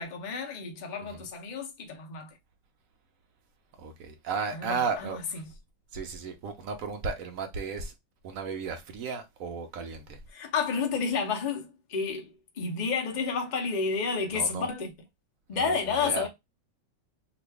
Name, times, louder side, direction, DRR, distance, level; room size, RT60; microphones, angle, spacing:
voice 1, 0.0-2.4 4.5-5.5 10.3-14.9 15.5-16.3, left 5 dB, 75° left, 0.4 m, -31 dB
voice 2, 3.8-5.2 5.9-7.9 8.2-10.2 14.3-14.7 15.6-16.3, right 5 dB, 65° right, 0.9 m, -34 dB
3.0 x 2.5 x 3.3 m
omnidirectional pair, 1.9 m